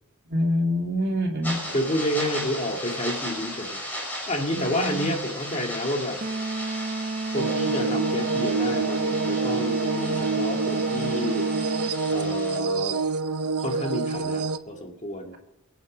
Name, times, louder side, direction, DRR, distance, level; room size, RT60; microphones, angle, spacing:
voice 1, 0.3-1.6 4.5-5.1, left 1 dB, 50° right, 1 dB, 2.5 m, -26 dB
sound 1, 1.4-12.6, equal, 10° left, 4.8 m, -36 dB
voice 2, 1.7-3.8 4.3-6.2 7.3-11.5 12.1-13.0 13.6-15.4, left 1 dB, 30° left, 2 dB, 2.1 m, -29 dB
sound 2, 6.2-12.2, right 3 dB, 30° right, 0.5 m, -31 dB
sound 3, 7.4-14.6, right 4 dB, 85° right, 0.8 m, -27 dB
24.5 x 8.4 x 5.3 m, 1.0 s
head